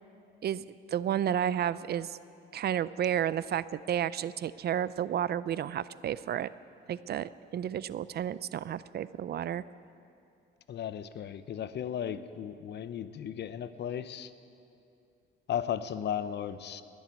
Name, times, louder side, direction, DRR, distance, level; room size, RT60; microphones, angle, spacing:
voice 1, 0.9-2.2 2.5-6.5 6.9-9.6, right 10 dB, 55° right, 17 dB, 0.5 m, -31 dB
voice 2, 10.7-14.3 15.5-16.8, left 9 dB, 60° left, 13 dB, 0.7 m, -35 dB
20.5 x 7.3 x 9.4 m, 2.6 s
cardioid pair, 90°, 20 cm